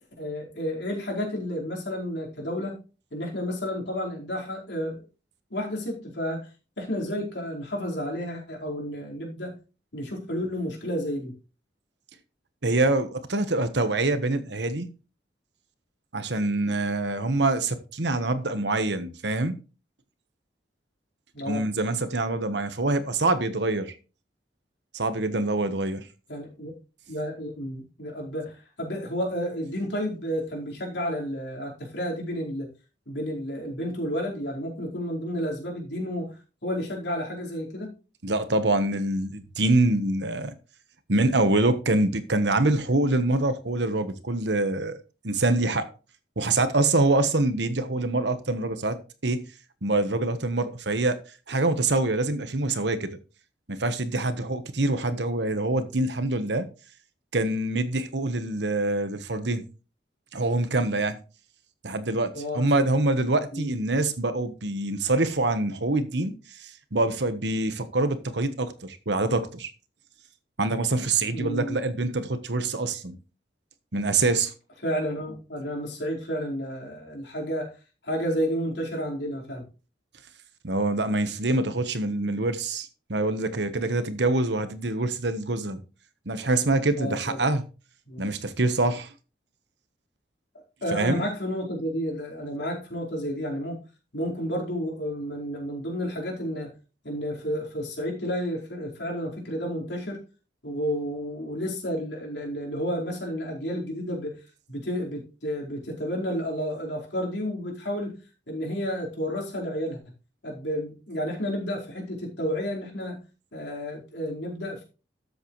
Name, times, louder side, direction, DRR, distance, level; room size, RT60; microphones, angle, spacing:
voice 1, 0.2-2.8 3.1-5.0 5.5-6.5 6.8-9.5 9.9-11.3 21.3-21.6 26.3-26.8 27.1-32.7 33.1-36.3 36.6-37.9 62.3-62.9 63.5-63.6 71.3-71.8 74.8-77.7 78.0-79.6 87.0-87.4 88.1-88.2 90.8-93.8 94.1-96.7 97.0-100.2 100.6-104.4 104.7-108.1 108.5-110.0 110.4-113.2 113.5-114.8, equal, 70° left, 4.7 m, -31 dB
voice 2, 12.6-14.9 16.1-19.6 21.5-23.9 24.9-26.1 38.2-40.5 41.1-45.0 45.2-45.9 46.4-49.4 49.8-51.2 51.5-53.2 53.7-56.7 57.3-59.6 60.3-61.2 61.8-66.3 66.6-69.7 70.6-73.1 73.9-74.5 80.6-85.8 86.3-87.6 88.2-89.1 90.9-91.2, right 2 dB, 70° right, 1.3 m, -25 dB
13.0 x 7.9 x 3.2 m
head